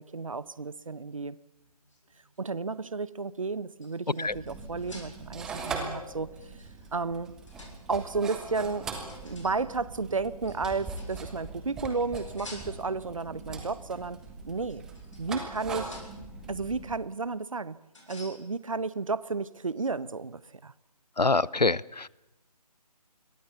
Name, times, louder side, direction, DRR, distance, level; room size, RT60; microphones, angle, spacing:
voice 1, 0.0-1.4 2.4-6.3 6.9-7.3 7.9-8.9 9.2-14.2 14.5-14.8 15.2-16.0 16.5-17.8 18.1-20.7, right 4 dB, 55° right, 18 dB, 1.0 m, -32 dB
sound 1, 1.5-2.8 3.4-5.4 6.4-8.0 9.1-9.6 10.4-11.4 12.1-13.1 13.9-14.0 14.6-16.4 17.9-18.5, left 2 dB, 50° left, 6.8 m, -51 dB
sound 2, 4.3-17.0, right 4 dB, 5° right, 0.8 m, -41 dB
voice 2, 21.2-22.1, left 3 dB, 80° left, 23 dB, 0.8 m, -25 dB
27.0 x 22.0 x 7.1 m, 0.93 s
figure-of-eight pair, 155°, 21 cm